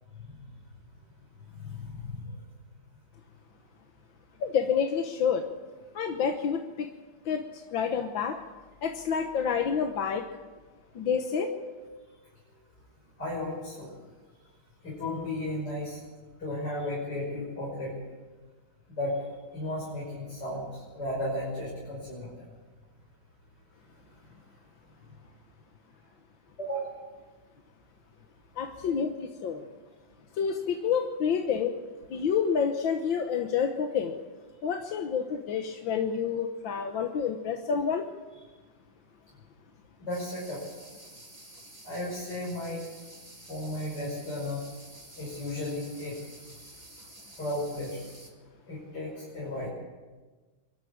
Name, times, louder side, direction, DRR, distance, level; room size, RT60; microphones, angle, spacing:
voice 1, 1.5-2.2 11.3-11.5 13.2-13.9 14.8-16.0 16.4-17.9 18.9-19.2 19.5-22.3 26.6-26.9 40.0-40.6 41.8-42.8 43.5-44.6 45.2-46.2 47.4-48.1 48.7-49.7, left 1 dB, 55° left, -6 dB, 6.9 m, -34 dB
voice 2, 4.4-5.5 6.0-6.9 7.3-8.4 8.8-10.2 11.0-11.5 28.6-29.6 30.4-31.8 32.1-34.1 34.6-38.0, left 7 dB, 75° left, 4 dB, 1.8 m, -28 dB
sound 1, 40.1-48.3, right 2 dB, 20° right, 2.6 m, -50 dB
24.0 x 13.0 x 8.7 m, 1.3 s
omnidirectional pair, 2.2 m